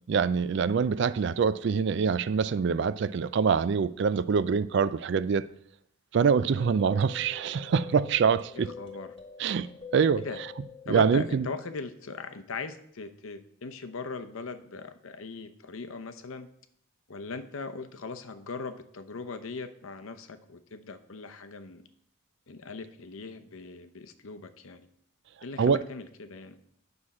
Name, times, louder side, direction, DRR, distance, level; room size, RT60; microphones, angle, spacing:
voice 1, 0.1-5.5 6.1-8.7 9.4-10.2 10.9-11.5 25.6-25.8, right 6 dB, 55° right, 0.3 m, -25 dB
sound 1, 6.6-11.7, left 5 dB, 25° left, 1.3 m, -45 dB
voice 2, 8.6-9.1 10.2-10.4 10.9-16.5 17.1-21.8 22.5-24.9 25.4-26.6, left 4 dB, 75° left, 0.7 m, -40 dB
9.5 x 6.3 x 4.2 m
head